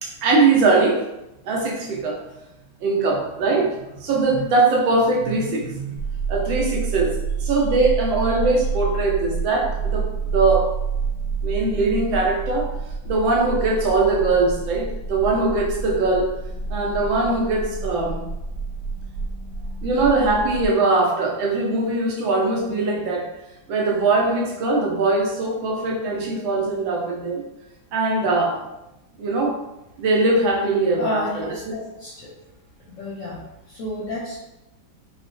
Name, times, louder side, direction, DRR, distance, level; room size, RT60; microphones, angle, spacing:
voice 1, 0.0-1.0 1.5-2.2 2.8-6.0 6.3-7.1 7.4-10.1 10.3-10.7 11.4-12.7 13.0-16.3 16.7-18.3 19.8-23.3 23.7-27.4 27.9-28.6 29.2-29.5 30.0-31.5, right 3 dB, 85° right, -2 dB, 1.5 m, -21 dB
sound 1, 6.0-20.7, right 5 dB, 50° right, 0.8 m, -28 dB
voice 2, 31.0-32.3 32.9-33.4 33.7-34.4, left 2 dB, 60° left, -6 dB, 0.8 m, -30 dB
4.7 x 2.1 x 2.6 m, 0.92 s
omnidirectional pair, 2.0 m